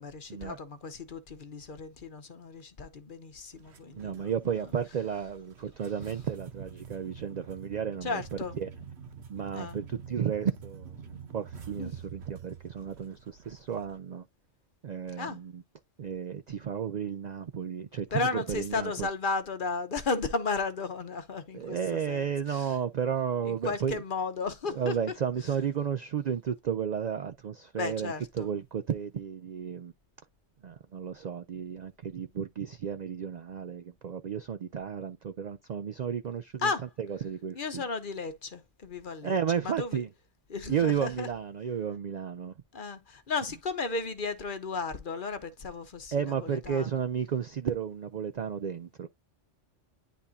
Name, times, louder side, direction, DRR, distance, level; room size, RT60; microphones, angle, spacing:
voice 1, 0.0-4.3 8.0-8.5 9.5-9.8 11.8-11.9 15.2-15.4 18.1-22.7 23.4-24.9 27.8-28.5 36.6-36.9 37.5-39.3 39.6-40.0 40.5-41.3 42.7-46.9, left 4 dB, 45° left, 1.0 m, -34 dB
sound 1, 3.5-14.0, right 6 dB, 60° right, 1.3 m, -47 dB
voice 2, 4.0-8.7 9.3-14.2 14.8-15.6 16.0-19.1 21.5-24.0 24.7-29.9 30.6-36.7 37.0-37.8 39.2-40.1 40.7-42.5 46.1-49.1, right 8 dB, 80° right, 0.4 m, -33 dB
10.5 x 3.6 x 2.7 m
omnidirectional pair, 1.3 m